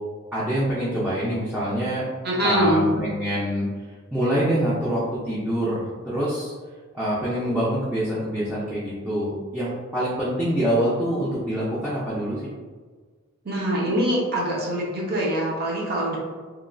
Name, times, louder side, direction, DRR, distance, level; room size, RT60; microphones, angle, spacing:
voice 1, 0.3-2.0 2.4-3.6 4.1-6.5 6.9-12.5, equal, 5° right, -10 dB, 0.4 m, -25 dB
voice 2, 2.2-2.9 13.4-16.2, equal, 45° right, -4 dB, 0.7 m, -23 dB
3.0 x 2.2 x 2.4 m, 1.5 s
head